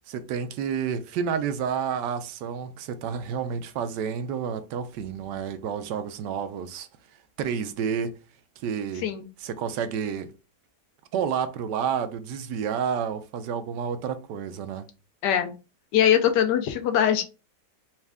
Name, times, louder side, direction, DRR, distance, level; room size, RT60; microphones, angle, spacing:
voice 1, 0.1-6.9 7.4-8.1 8.6-9.1 9.4-10.3 11.1-14.9, right 7 dB, 80° right, 1.2 m, -30 dB
voice 2, 15.2-15.5 15.9-17.2, left 9 dB, 75° left, 1.3 m, -22 dB
4.3 x 2.4 x 3.4 m
omnidirectional pair, 1.9 m